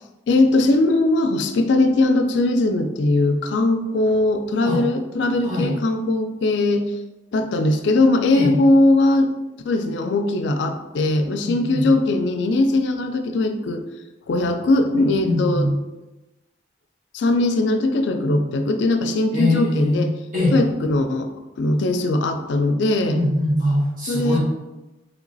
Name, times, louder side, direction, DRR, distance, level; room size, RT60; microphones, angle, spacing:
voice 1, 0.3-6.9 7.3-9.3 9.6-13.8 14.3-15.7 17.1-20.1 20.5-21.3 21.6-23.2 24.1-24.4, left 2 dB, 70° left, 7 dB, 0.4 m, -20 dB
voice 2, 11.4-11.9 15.2-15.7 19.3-20.6 23.1-24.4, left 1 dB, 45° right, -7 dB, 1.4 m, -22 dB
3.2 x 3.0 x 3.9 m, 1.0 s
head